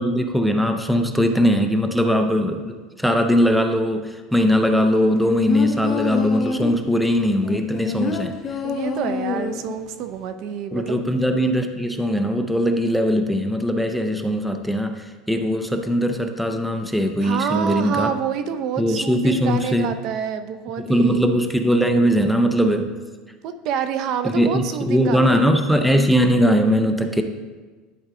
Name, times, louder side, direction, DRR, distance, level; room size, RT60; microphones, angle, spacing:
voice 1, 0.0-8.4 10.7-18.1 18.8-19.9 20.8-22.9 24.3-27.2, equal, ahead, 6 dB, 0.5 m, -20 dB
sound 1, 4.9-6.8 7.4-9.8 10.2-10.3, left 6 dB, 30° left, 0.8 m, -27 dB
voice 2, 8.6-11.0 17.2-21.4 23.4-25.6, right 8 dB, 50° right, 10 dB, 0.5 m, -28 dB
11.0 x 4.7 x 3.7 m, 1.3 s
supercardioid pair, 145°, 0 cm